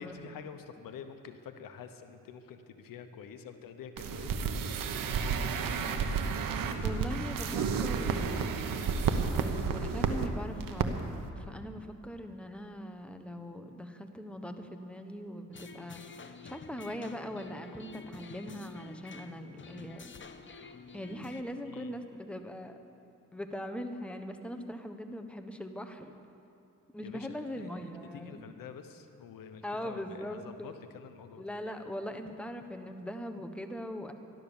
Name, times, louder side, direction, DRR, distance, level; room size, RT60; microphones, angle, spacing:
voice 1, 0.0-4.4 21.7-21.9 27.0-31.4, left 7 dB, 85° left, 8 dB, 1.0 m, -47 dB
sound 1, 4.0-10.3 10.6-10.9 11.1-11.3, right 6 dB, 80° right, 1.1 m, -31 dB
voice 2, 6.8-11.1 11.4-16.0 16.4-20.1 20.4-22.8 23.3-26.1 26.9-28.5 29.6-30.7 31.4-34.1, equal, 5° left, 6 dB, 1.1 m, -41 dB
sound 2, 15.5-21.4, left 4 dB, 35° left, 0.9 m, -49 dB
13.5 x 12.0 x 7.1 m, 2.6 s
cardioid pair, 70°, 33 cm